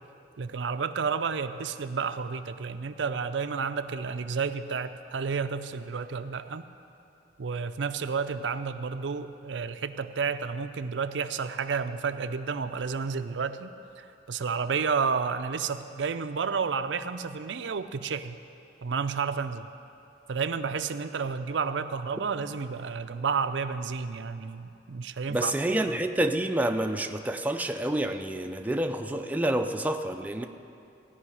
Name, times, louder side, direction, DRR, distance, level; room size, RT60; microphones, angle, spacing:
voice 1, 0.4-6.6 7.4-18.4 18.8-19.7 20.3-25.5, right 5 dB, 80° right, 9 dB, 0.5 m, -31 dB
voice 2, 25.3-30.5, right 1 dB, 10° right, 5 dB, 0.5 m, -28 dB
16.5 x 5.6 x 9.7 m, 2.7 s
head